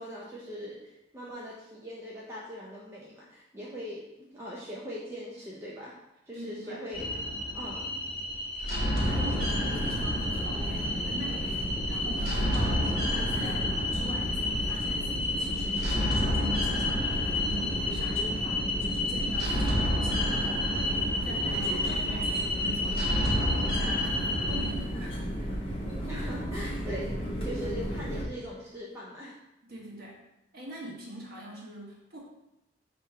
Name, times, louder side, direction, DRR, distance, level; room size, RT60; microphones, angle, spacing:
voice 1, 0.0-5.9 6.3-7.1 7.5-7.9 26.1-29.4, equal, 15° right, -6 dB, 0.5 m, -41 dB
voice 2, 6.3-6.8 9.0-25.5 29.7-30.2 30.5-32.2, right 1 dB, 50° right, -4 dB, 1.1 m, -43 dB
sound 1, 6.9-24.7, left 1 dB, 50° left, 1.2 m, -30 dB
sound 2, 9.0-28.2, equal, 30° left, 0.8 m, -34 dB
3.4 x 3.0 x 4.6 m, 0.89 s
head